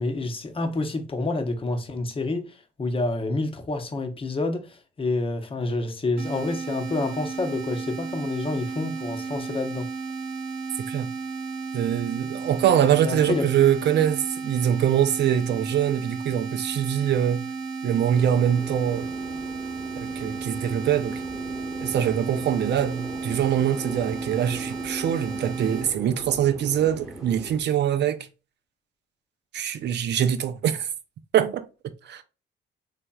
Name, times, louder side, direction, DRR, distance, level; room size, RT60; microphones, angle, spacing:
voice 1, 0.0-9.9 13.0-13.5, left 2 dB, 25° left, 0.7 m, -28 dB
sound 1, 6.2-25.9, right 5 dB, 90° right, 1.2 m, -34 dB
voice 2, 11.7-17.5 17.8-19.1 20.0-21.2 21.8-28.3 29.5-30.9 31.3-31.7 32.0-32.2, right 10 dB, 60° right, 0.5 m, -23 dB
sound 2, 18.1-27.6, equal, ahead, 1.1 m, -40 dB
4.0 x 3.4 x 2.3 m
cardioid pair, 90°, 20 cm